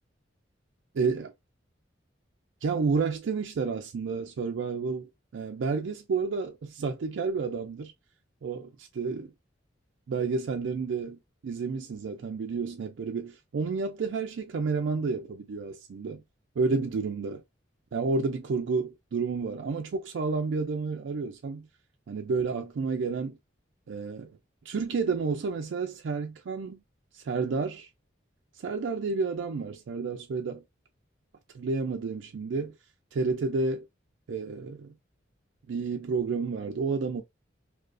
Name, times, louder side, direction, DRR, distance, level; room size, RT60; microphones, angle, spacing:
voice 1, 0.9-1.3 2.6-7.9 8.4-9.3 10.1-16.2 16.6-17.4 17.9-21.7 22.1-23.4 23.9-24.3 24.7-26.8 27.1-27.9 28.6-30.6 31.5-32.7 33.1-33.9 34.3-34.9 35.7-37.2, right 4 dB, 70° right, 0.4 m, -30 dB
2.4 x 2.3 x 2.2 m
head